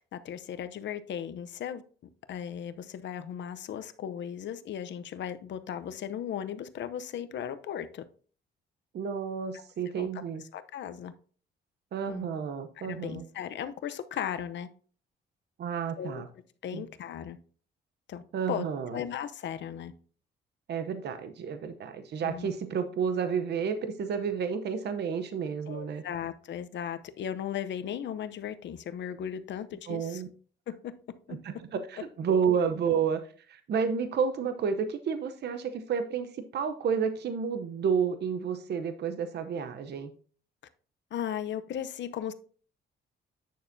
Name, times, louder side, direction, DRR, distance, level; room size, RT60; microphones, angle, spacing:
voice 1, 0.0-1.8 2.3-8.0 9.9-10.1 10.5-11.1 12.1-12.3 12.8-14.7 16.0-16.2 16.6-17.4 18.1-18.7 18.9-19.9 22.2-22.5 25.7-30.2 30.7-30.9 31.3-31.4 41.1-42.3, left 9 dB, 65° left, 11 dB, 0.7 m, -36 dB
voice 2, 8.9-10.4 11.9-13.2 15.6-16.3 16.7-16.8 18.3-19.0 20.7-26.0 29.9-30.3 31.4-40.1, right 6 dB, 60° right, 9 dB, 0.8 m, -31 dB
9.3 x 6.6 x 2.7 m, 0.43 s
cardioid pair, 90°, 20 cm